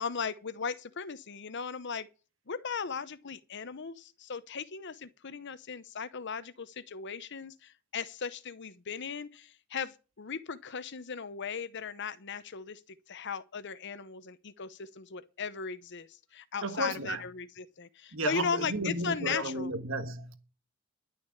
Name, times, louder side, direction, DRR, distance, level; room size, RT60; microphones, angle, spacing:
voice 1, 0.0-2.1 2.5-12.8 13.1-19.7, left 6 dB, 60° left, 0.8 m, -37 dB
voice 2, 16.6-17.2 18.1-20.4, right 2 dB, 70° right, 1.4 m, -33 dB
11.5 x 6.5 x 8.5 m
head